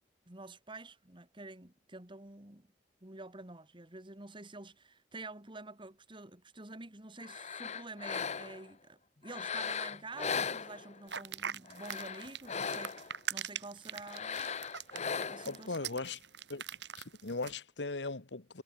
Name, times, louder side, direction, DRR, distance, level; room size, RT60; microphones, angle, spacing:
voice 1, 0.3-2.7 3.0-14.6 15.3-15.9, right 2 dB, 30° right, 2.4 m, -48 dB
sound 1, 7.2-8.7 9.3-11.1 11.7-13.2 14.0-15.6, left 6 dB, 40° left, 1.0 m, -38 dB
sound 2, 11.1-17.6, right 7 dB, 90° right, 4.1 m, -42 dB
voice 2, 15.5-16.2 16.5-16.6 17.0-18.6, left 3 dB, 90° left, 1.5 m, -38 dB
head